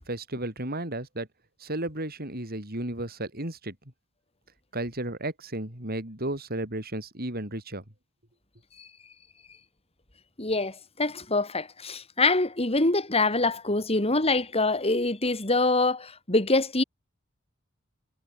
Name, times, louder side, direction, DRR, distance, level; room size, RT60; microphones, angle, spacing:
voice 1, 0.1-1.3 1.6-3.8 4.7-7.8, right 1 dB, 45° right, 7.2 m, -33 dB
voice 2, 10.4-16.8, left 2 dB, 30° left, 3.8 m, -25 dB
head